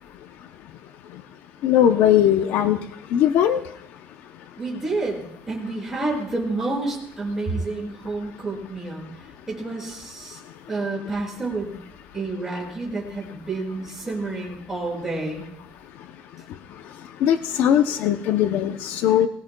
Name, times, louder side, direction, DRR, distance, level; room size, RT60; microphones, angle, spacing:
voice 1, 1.6-2.8 3.1-3.6 17.2-19.3, left 10 dB, 55° left, 7 dB, 0.6 m, -19 dB
voice 2, 4.6-9.1 9.5-10.4 10.7-11.8 12.1-15.5, right 2 dB, 10° right, -4 dB, 6.4 m, -29 dB
21.5 x 18.5 x 2.3 m, 0.73 s
cardioid pair, 180°, 4 cm